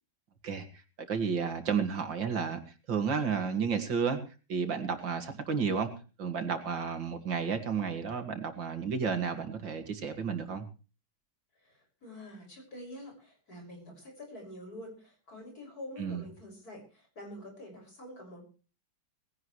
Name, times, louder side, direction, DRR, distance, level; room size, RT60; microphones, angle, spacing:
voice 1, 1.1-2.6 2.9-4.2 4.5-5.9 6.2-10.6 16.0-16.2, right 6 dB, 70° right, 7 dB, 2.8 m, -31 dB
voice 2, 11.6-18.4, left 1 dB, 50° left, 2 dB, 6.7 m, -47 dB
19.5 x 17.0 x 3.2 m, 0.35 s
omnidirectional pair, 2.1 m